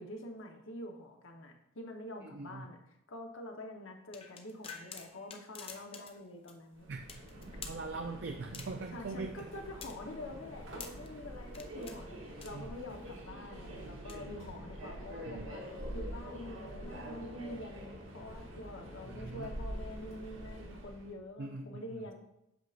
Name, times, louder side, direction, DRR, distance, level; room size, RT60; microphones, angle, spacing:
voice 1, 0.0-2.8 3.1-6.9 7.5-7.6 8.9-22.1, left 1 dB, 70° left, 3 dB, 1.0 m, -46 dB
voice 2, 2.3-2.7 6.9-7.1 7.4-9.4 12.5-12.7 15.3-15.5 19.1-19.5 21.4-22.1, right 3 dB, 55° right, 4 dB, 0.4 m, -42 dB
sound 1, 4.1-6.2 6.5-6.6 7.1-7.8 8.5-8.9 9.4-11.1 11.5-12.0 12.4-12.9 13.9-14.1, left 6 dB, 25° left, 0.5 m, -48 dB
Subway metro underground, 6.7-21.1, equal, 70° right, 1.2 m, -45 dB
8.0 x 6.4 x 2.5 m, 0.86 s
head